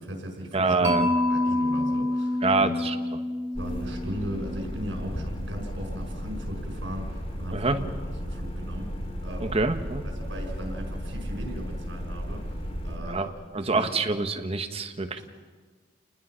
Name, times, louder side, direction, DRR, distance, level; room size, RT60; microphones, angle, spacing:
voice 1, 0.0-2.8 3.6-8.9 9.2-9.6 10.0-12.5 12.8-13.9 15.2-15.3, equal, 80° right, 3 dB, 5.5 m, -38 dB
voice 2, 0.5-1.1 2.4-2.9 7.5-7.8 9.4-10.0 13.0-15.2, right 3 dB, 35° right, 7 dB, 1.3 m, -26 dB
Mallet percussion, 0.8-4.9, left 1 dB, 15° right, 2.4 m, -27 dB
sound 1, 3.5-13.0, equal, 35° left, 3.1 m, -34 dB
29.5 x 20.0 x 5.8 m, 1.5 s
head